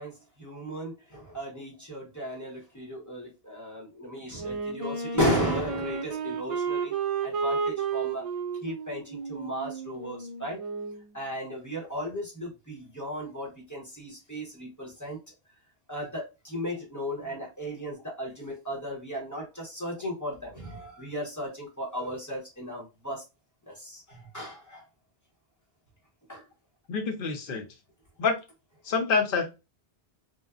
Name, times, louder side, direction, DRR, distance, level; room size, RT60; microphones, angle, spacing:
voice 1, 0.0-6.9 7.2-8.2 8.6-10.6 11.1-15.2 15.9-23.2 23.7-24.8 26.3-26.4, equal, 20° left, 0.8 m, -35 dB
Wind instrument woodwind instrument, 4.3-11.1, right 5 dB, 65° right, 0.3 m, -32 dB
voice 2, 26.9-27.7 28.2-28.3 28.8-29.5, left 5 dB, 60° left, 0.8 m, -26 dB
2.8 x 2.1 x 2.3 m
omnidirectional pair, 1.1 m